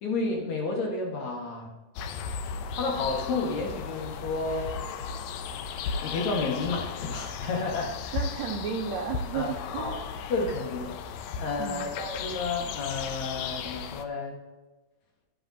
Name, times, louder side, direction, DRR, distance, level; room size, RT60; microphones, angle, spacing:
voice 1, 0.0-1.7 2.7-4.7 6.0-8.2 9.3-10.0 10.3-11.0 11.4-14.4, left 3 dB, 60° left, 0 dB, 2.7 m, -31 dB
sound 1, 2.0-14.1, left 6 dB, 80° left, 1.8 m, -36 dB
voice 2, 8.1-10.0 11.6-11.9, right 6 dB, 75° right, 2 dB, 1.7 m, -33 dB
12.0 x 9.1 x 2.8 m, 1.1 s
omnidirectional pair, 3.9 m